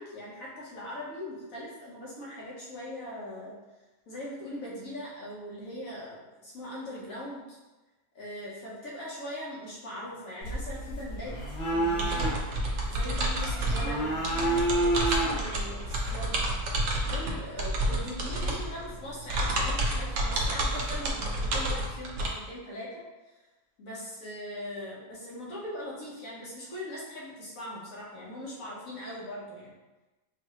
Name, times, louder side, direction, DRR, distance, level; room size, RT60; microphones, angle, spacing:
voice 1, 0.0-3.5 4.1-7.6 8.1-11.3 11.7-16.4 16.7-23.0 23.8-29.7, left 1 dB, 70° left, -5 dB, 1.5 m, -40 dB
sound 1, 10.4-16.4, right 1 dB, 50° left, 1.3 m, -30 dB
sound 2, 12.0-22.3, right 1 dB, 65° right, 1.0 m, -30 dB
4.6 x 2.7 x 3.0 m, 1.1 s
omnidirectional pair, 1.5 m